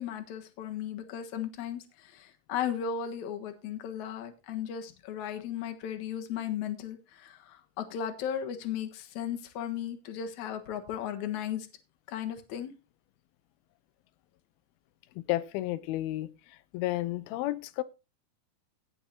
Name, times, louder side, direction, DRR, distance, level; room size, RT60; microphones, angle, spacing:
voice 1, 0.0-11.7 12.1-12.7, left 9 dB, 60° left, 2.5 m, -36 dB
voice 2, 15.3-17.8, left 16 dB, 90° left, 2.6 m, -32 dB
17.5 x 7.4 x 2.8 m
omnidirectional pair, 4.3 m